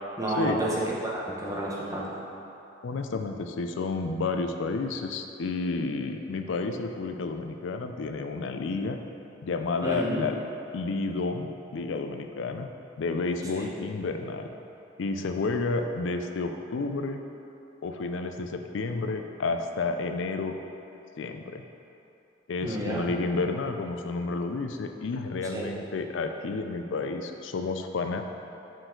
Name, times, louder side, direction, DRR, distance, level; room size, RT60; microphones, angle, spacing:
voice 1, 0.2-2.1 9.8-10.2 13.6-13.7 22.6-23.0 25.5-25.7, right 1 dB, 15° right, -5 dB, 0.8 m, -30 dB
voice 2, 2.8-9.0 9.4-10.4 10.7-12.7 13.0-14.5 15.0-17.2 17.8-20.6 21.2-21.6 22.5-28.2, left 3 dB, 70° left, 6 dB, 0.4 m, -31 dB
6.1 x 4.6 x 3.8 m, 2.9 s
head